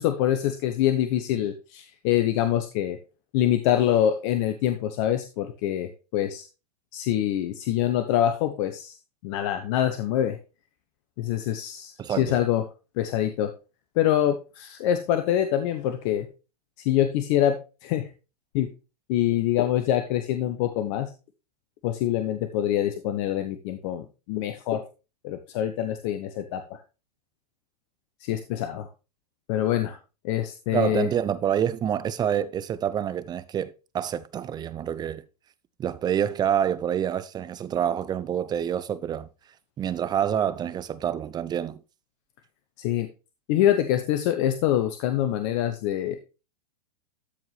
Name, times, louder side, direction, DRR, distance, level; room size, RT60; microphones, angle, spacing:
voice 1, 0.0-3.0 3.3-6.4 6.9-9.0 9.2-10.4 11.2-12.6 13.0-13.5 14.0-16.3 16.8-17.5 17.8-18.1 18.5-18.7 19.1-21.1 21.8-24.8 25.2-26.8 28.2-28.9 29.5-30.0 30.2-31.1 42.8-43.1 43.5-46.2, left 11 dB, 50° left, 1.0 m, -25 dB
voice 2, 12.0-12.4 30.7-35.2 35.8-39.3 39.8-41.8, right 9 dB, 20° right, 0.6 m, -27 dB
13.0 x 4.7 x 3.2 m
hypercardioid pair, 115°, 20 cm